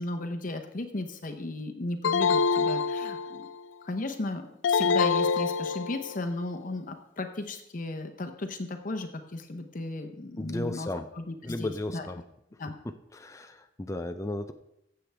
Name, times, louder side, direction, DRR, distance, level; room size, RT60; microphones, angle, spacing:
voice 1, 0.0-3.5 3.8-10.9 11.2-12.1 12.6-12.7, left 2 dB, 45° left, 6 dB, 0.8 m, -35 dB
sound 1, 2.0-3.6 4.6-6.2, left 5 dB, 90° left, 0.4 m, -26 dB
voice 2, 10.4-11.1 11.4-12.2 13.1-14.5, left 2 dB, 15° left, 7 dB, 0.4 m, -34 dB
15.0 x 7.7 x 3.4 m, 0.80 s
head